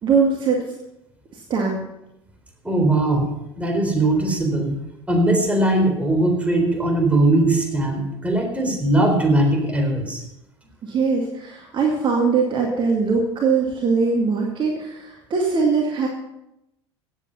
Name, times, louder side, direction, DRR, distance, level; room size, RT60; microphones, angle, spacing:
voice 1, 0.0-0.6 1.3-1.8 10.8-16.1, right 5 dB, 35° right, 0 dB, 2.2 m, -21 dB
voice 2, 2.6-4.7 5.1-10.2, right 1 dB, 10° right, 2 dB, 4.0 m, -20 dB
16.5 x 8.4 x 5.7 m, 0.87 s
figure-of-eight pair, 70°, 14 cm